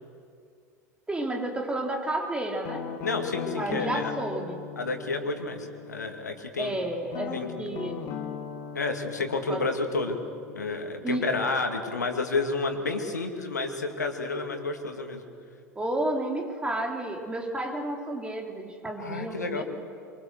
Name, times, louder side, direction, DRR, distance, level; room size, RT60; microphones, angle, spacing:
voice 1, 1.1-2.9 3.6-4.6 6.6-8.2 9.5-9.7 11.0-11.3 15.8-19.6, right 1 dB, 10° right, 2 dB, 3.5 m, -31 dB
Guitar, 2.6-6.4 7.1-11.8, left 8 dB, 45° left, 2.1 m, -39 dB
voice 2, 3.0-4.1 4.8-6.7 7.3-7.5 8.7-10.2 10.5-15.2 19.0-19.6, left 3 dB, 75° left, 5 dB, 2.2 m, -30 dB
24.5 x 24.0 x 6.7 m, 2.4 s
figure-of-eight pair, 80°, 9 cm